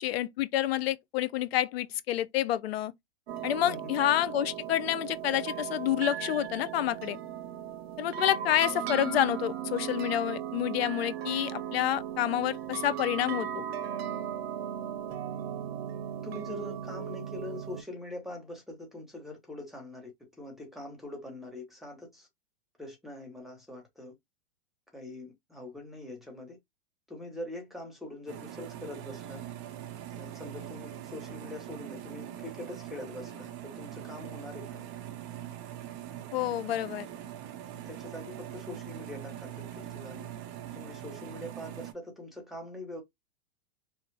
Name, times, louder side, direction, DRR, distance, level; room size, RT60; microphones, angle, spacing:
voice 1, 0.0-2.9 3.4-7.2 8.0-13.6 36.3-37.1, left 12 dB, 75° left, 0.5 m, -28 dB
sound 1, 3.3-17.8, right 9 dB, 75° right, 0.7 m, -37 dB
voice 2, 3.6-4.0 16.2-20.1 20.4-22.3 22.8-24.1 24.9-26.6 27.1-29.4 30.1-34.8 37.8-40.2 40.7-43.0, left 1 dB, ahead, 1.1 m, -43 dB
sound 2, 28.3-41.9, right 11 dB, 35° right, 0.7 m, -42 dB
3.2 x 2.0 x 3.2 m
hypercardioid pair, 125°, 31 cm